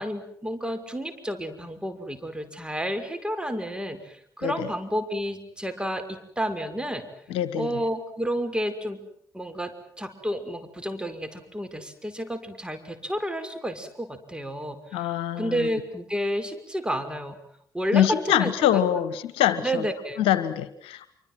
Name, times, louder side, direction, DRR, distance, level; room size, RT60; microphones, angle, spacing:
voice 1, 0.0-7.0 7.6-9.0 9.3-15.1 15.3-17.4 17.7-18.8 19.6-20.3, equal, 10° right, 8 dB, 5.8 m, -31 dB
voice 2, 7.3-7.8 14.9-15.7 17.9-19.8 20.2-21.1, left 11 dB, 70° left, 13 dB, 1.4 m, -24 dB
27.0 x 24.5 x 7.7 m, 0.65 s
figure-of-eight pair, 40°, 10 cm